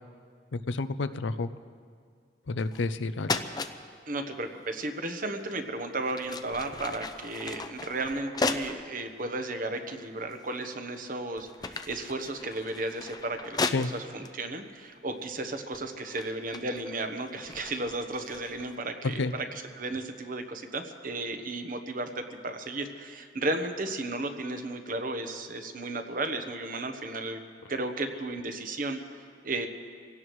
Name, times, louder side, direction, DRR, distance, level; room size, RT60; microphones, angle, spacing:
voice 1, 0.5-1.5 2.5-3.4 13.6-13.9 19.0-19.3, left 3 dB, 85° left, 12 dB, 0.6 m, -30 dB
sound 1, 2.6-3.0 3.2-3.8 5.4-5.6 6.0-8.9 9.5-9.6 10.3-10.8 11.2-14.3 15.2-15.4 15.7-18.8, left 3 dB, 20° left, 0.5 m, -36 dB
voice 2, 4.1-27.4 27.7-29.7, right 2 dB, 45° right, 7 dB, 1.1 m, -34 dB
26.0 x 17.0 x 3.2 m, 2.1 s
head